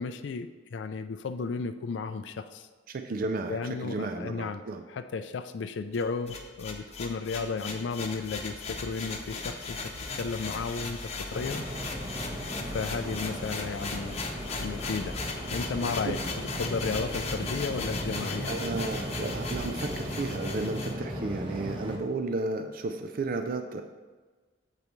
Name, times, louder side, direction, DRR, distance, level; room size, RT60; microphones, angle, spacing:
voice 1, 0.0-2.7 3.5-4.6 4.9-11.6 12.7-14.2 14.6-15.2 15.5-18.5, left 4 dB, 70° left, 10 dB, 0.4 m, -34 dB
voice 2, 2.9-4.8 18.5-23.8, right 3 dB, 50° right, 6 dB, 0.4 m, -33 dB
sound 1, 5.9-20.9, left 3 dB, 35° left, 0.8 m, -37 dB
Waves surf, 11.3-22.0, equal, 30° right, 1.1 m, -37 dB
8.4 x 7.7 x 3.1 m, 1.3 s
head